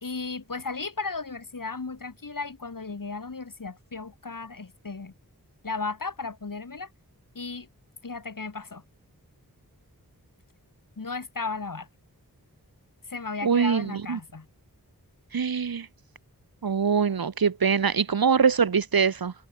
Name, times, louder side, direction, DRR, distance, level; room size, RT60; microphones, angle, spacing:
voice 1, 0.0-5.1 5.6-6.9 7.3-7.7 8.0-8.8 11.0-11.9 13.1-14.5, left 4 dB, 60° left, 2.5 m, -35 dB
voice 2, 13.4-14.2 15.3-15.9 16.6-19.3, right 6 dB, 70° right, 1.0 m, -23 dB
wide cardioid pair, 65°, 37 cm